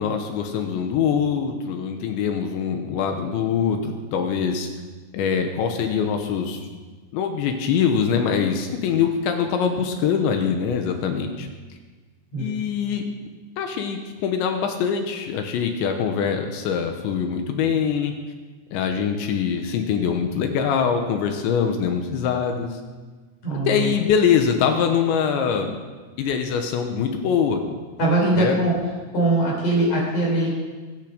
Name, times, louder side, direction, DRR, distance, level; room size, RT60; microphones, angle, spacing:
voice 1, 0.0-4.7 5.1-6.6 7.1-11.5 12.4-13.0 13.6-18.1 18.7-22.8 23.7-25.8 26.2-27.6 28.3-28.6, left 7 dB, 75° left, 5 dB, 3.2 m, -23 dB
voice 2, 23.4-23.9 28.0-28.7 29.1-30.5, right 2 dB, 35° left, -3 dB, 5.9 m, -21 dB
23.0 x 9.0 x 5.2 m, 1.4 s
omnidirectional pair, 5.5 m